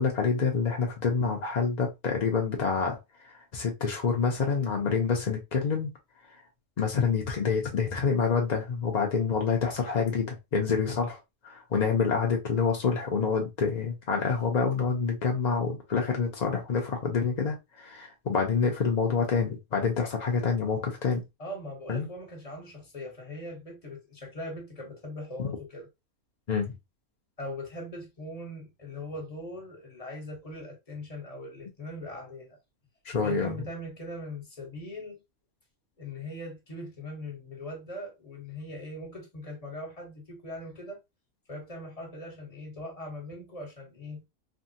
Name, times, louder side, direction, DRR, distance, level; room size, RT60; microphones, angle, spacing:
voice 1, 0.0-3.0 3.3-5.9 6.8-11.2 11.4-21.2 21.9-22.1 25.4-25.5 26.5-26.7 33.0-33.5, left 5 dB, 60° left, 0.4 m, -27 dB
voice 2, 21.4-25.9 27.4-32.6 33.2-35.2 36.0-41.0 41.5-44.2, left 1 dB, 30° left, 1.0 m, -40 dB
3.5 x 2.2 x 2.6 m
omnidirectional pair, 1.5 m